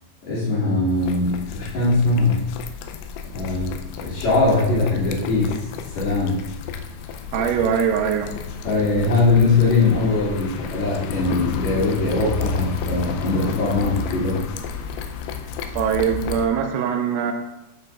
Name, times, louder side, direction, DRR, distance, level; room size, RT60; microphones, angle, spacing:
voice 1, 0.3-2.4 3.3-5.5 5.9-6.4 8.6-14.4, left 3 dB, 45° left, -12 dB, 3.0 m, -21 dB
sound 1, 0.9-16.5, left 6 dB, 90° left, 2.6 m, -32 dB
voice 2, 7.3-8.3 15.8-17.3, right 7 dB, 85° right, 4 dB, 3.5 m, -22 dB
12.5 x 6.9 x 2.4 m, 0.91 s
omnidirectional pair, 5.9 m